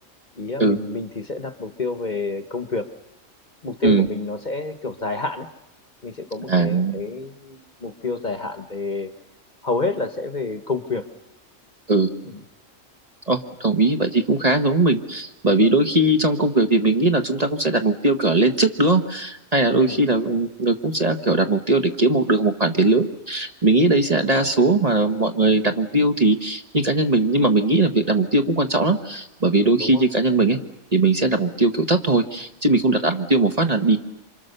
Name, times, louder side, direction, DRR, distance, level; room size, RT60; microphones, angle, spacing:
voice 1, 0.4-2.9 3.6-5.5 6.0-9.1 9.6-11.1 12.2-12.4 19.8-20.0 29.8-30.0, left 3 dB, 35° left, 9 dB, 1.2 m, -28 dB
voice 2, 6.5-7.0 11.9-12.1 13.3-30.6 30.9-34.0, right 2 dB, 30° right, 6 dB, 1.4 m, -19 dB
27.5 x 26.0 x 6.8 m, 0.89 s
omnidirectional pair, 1.4 m